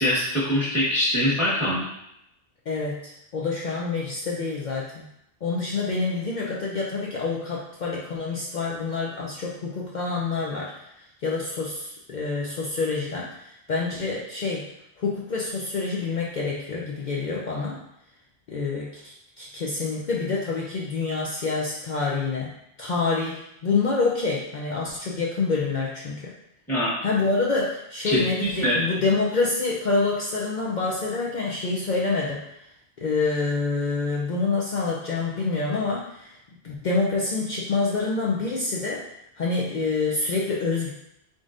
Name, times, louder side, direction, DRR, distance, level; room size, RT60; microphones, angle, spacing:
voice 1, 0.0-1.9 26.7-26.9 28.0-28.8, equal, ahead, -10 dB, 1.2 m, -23 dB
voice 2, 2.7-5.1 5.4-10.7 11.2-14.6 15.0-17.8 18.5-22.5 22.8-26.2 27.0-32.4 33.0-36.4 36.6-39.0 39.4-40.9, left 3 dB, 55° left, -4 dB, 0.6 m, -27 dB
3.8 x 3.7 x 2.5 m, 0.79 s
omnidirectional pair, 1.1 m